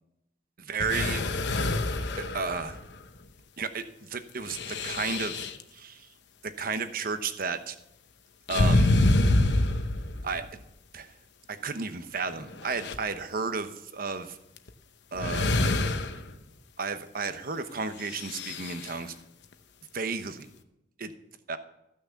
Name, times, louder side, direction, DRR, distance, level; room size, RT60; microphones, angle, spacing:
voice 1, 0.6-1.3 2.2-2.8 3.6-5.4 5.7-6.1 6.4-7.8 8.5-9.0 10.2-10.6 10.9-11.1 11.5-14.4 15.1-15.5 16.8-19.1 19.9-20.5 21.0-21.1 21.5-21.6, right 4 dB, 55° right, 10 dB, 0.9 m, -33 dB
sound 1, 0.8-3.0 4.4-5.6 8.5-10.5 11.7-11.8 12.4-13.0 14.6-14.7 15.2-16.3 18.0-18.9, left 2 dB, 70° left, 0.9 m, -26 dB
14.5 x 6.4 x 7.0 m, 0.86 s
head